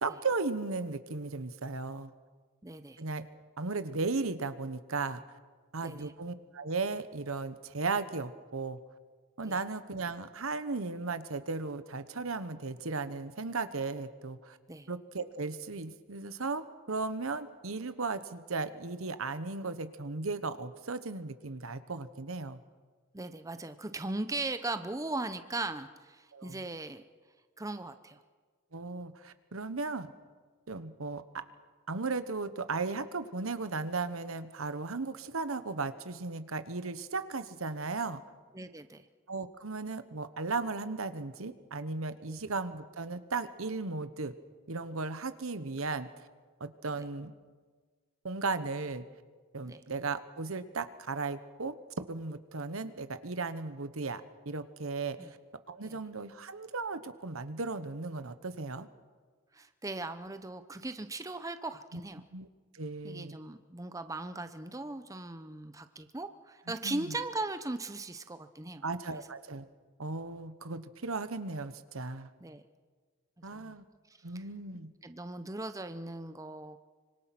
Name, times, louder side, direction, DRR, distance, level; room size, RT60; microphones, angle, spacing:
voice 1, 0.0-2.1 3.0-3.2 3.6-5.2 5.7-8.8 9.4-14.6 14.9-22.6 26.3-26.6 28.7-30.1 30.7-31.4 31.9-38.2 39.3-44.3 44.7-46.1 46.6-47.3 48.2-49.0 49.5-55.2 55.7-58.9 62.3-62.5 62.7-63.4 66.8-67.1 68.8-69.7 70.0-72.3 73.4-73.8 74.2-74.9, right 3 dB, 75° right, 12 dB, 1.2 m, -36 dB
voice 2, 2.6-3.0 5.8-6.1 9.4-9.6 14.7-14.9 23.1-27.0 27.6-28.2 38.5-39.1 42.3-42.4 47.0-47.1 49.6-49.8 55.2-55.3 55.8-56.0 59.5-62.2 63.0-68.8 69.1-69.2 72.4-72.6 73.5-73.8 74.3-74.5 74.7-76.8, right 2 dB, 15° right, 10 dB, 0.8 m, -39 dB
25.5 x 25.0 x 6.0 m, 1.5 s
head